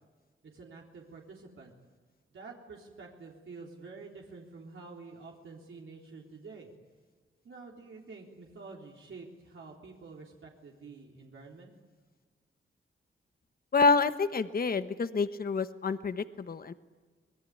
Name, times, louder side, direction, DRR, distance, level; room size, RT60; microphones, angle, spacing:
voice 1, 0.4-1.7 2.3-6.7 7.4-11.7, right 4 dB, 75° right, -2 dB, 3.6 m, -48 dB
voice 2, 13.7-16.7, left 4 dB, 45° left, 11 dB, 1.1 m, -28 dB
25.0 x 21.5 x 9.5 m, 1.4 s
wide cardioid pair, 95°, 21 cm